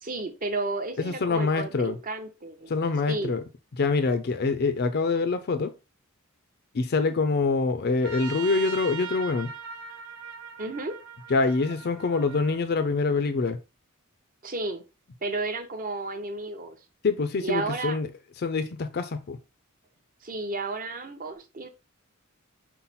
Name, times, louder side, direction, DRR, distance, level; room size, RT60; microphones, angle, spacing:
voice 1, 0.0-2.7 3.1-3.3 10.6-11.0 14.4-14.8 15.2-16.8 17.4-18.0 20.2-21.7, right 3 dB, 40° right, 0.7 m, -32 dB
voice 2, 1.0-2.0 2.7-3.4 3.8-5.7 6.7-9.5 11.3-13.6 17.0-18.1 18.4-19.4, left 4 dB, 45° left, 0.4 m, -25 dB
Trumpet, 8.0-12.6, right 6 dB, 75° right, 0.6 m, -40 dB
5.6 x 2.1 x 4.1 m
head